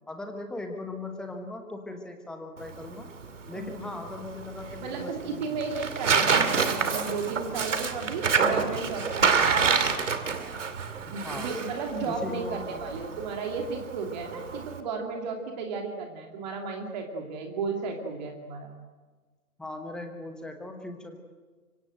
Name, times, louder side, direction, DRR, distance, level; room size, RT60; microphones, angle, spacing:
voice 1, 0.1-3.1 3.5-5.6 6.1-6.3 11.0-11.5 12.1-12.8 19.6-21.2, left 2 dB, ahead, 5 dB, 1.1 m, -39 dB
Tearing, 2.6-14.8, right 5 dB, 50° right, 2.6 m, -28 dB
voice 2, 4.8-10.0 11.1-18.7, right 4 dB, 25° right, 2 dB, 2.7 m, -34 dB
25.0 x 24.5 x 7.8 m, 1.3 s
figure-of-eight pair, 135°, 47 cm